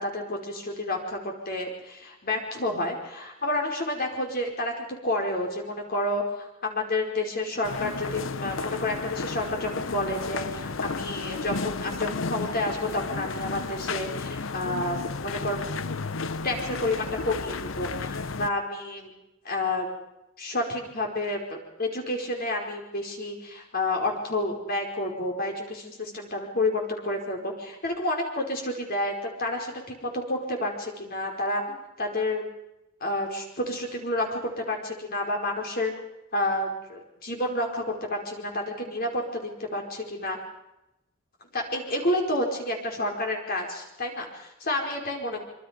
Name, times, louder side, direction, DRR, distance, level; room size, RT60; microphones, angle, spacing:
voice 1, 0.0-15.6 16.4-19.1 19.4-19.9 20.4-32.4 33.0-35.9 36.3-40.4 41.5-45.4, left 1 dB, 50° left, 2 dB, 5.0 m, -30 dB
sound 1, 7.6-18.5, left 4 dB, 80° left, 0.9 m, -33 dB
26.0 x 25.0 x 5.3 m, 0.89 s
head